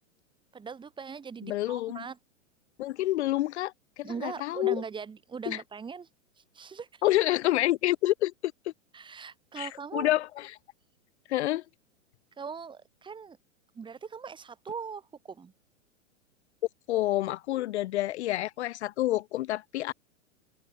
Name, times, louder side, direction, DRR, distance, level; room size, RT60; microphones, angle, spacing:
voice 1, 0.5-2.2 4.0-6.1 6.5-7.0 8.9-10.1 12.4-13.4 13.7-15.5, right 6 dB, 10° right, 1.6 m, -40 dB
voice 2, 1.4-2.1 2.8-4.8 5.5-5.6 7.0-8.7 9.6-10.5 11.3-11.6 16.9-19.9, left 15 dB, 60° left, 0.5 m, -28 dB
hypercardioid pair, 115°, 39 cm